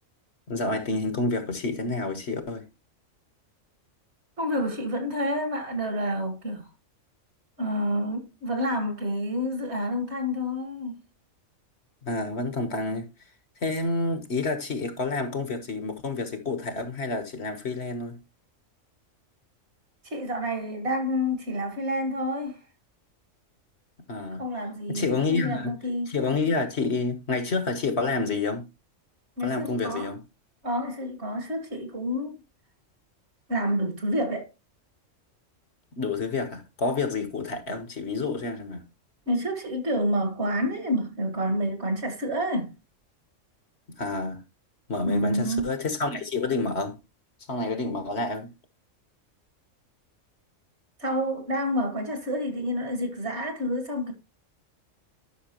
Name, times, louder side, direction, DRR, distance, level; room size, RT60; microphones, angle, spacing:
voice 1, 0.5-2.7 12.0-13.1 13.6-18.2 24.1-24.4 24.9-25.7 26.1-28.6 29.4-30.2 36.0-38.9 43.9-44.4 44.9-47.0 47.5-48.5, left 3 dB, 55° left, 1.5 m, -29 dB
voice 2, 4.4-6.7 7.6-11.0 20.0-22.6 24.4-26.1 29.4-30.1 30.6-32.4 33.5-34.5 39.3-42.8 45.0-45.7 51.0-54.1, equal, 55° right, 2.2 m, -28 dB
11.5 x 6.0 x 3.0 m
omnidirectional pair, 1.4 m